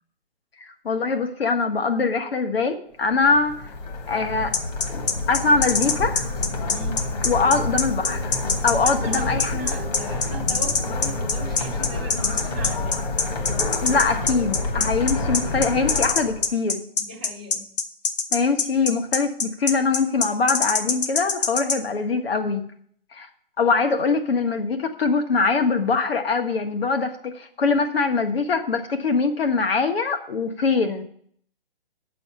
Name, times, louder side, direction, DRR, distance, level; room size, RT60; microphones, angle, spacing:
voice 1, 0.6-3.6 4.1-4.5 4.9-6.3 7.2-8.4 8.6-9.7 13.8-16.8 18.3-22.6 23.1-23.3 23.6-31.0, left 4 dB, 75° left, 5 dB, 1.6 m, -23 dB
sound 1, 3.1-16.5, left 2 dB, 45° left, 1.6 m, -28 dB
sound 2, 4.5-21.8, left 5 dB, 60° left, 1.1 m, -23 dB
voice 2, 6.7-7.0 8.7-13.1 17.0-17.7, right 2 dB, 10° right, -8 dB, 0.4 m, -38 dB
8.8 x 6.9 x 6.9 m, 0.62 s
hypercardioid pair, 165°, 30 cm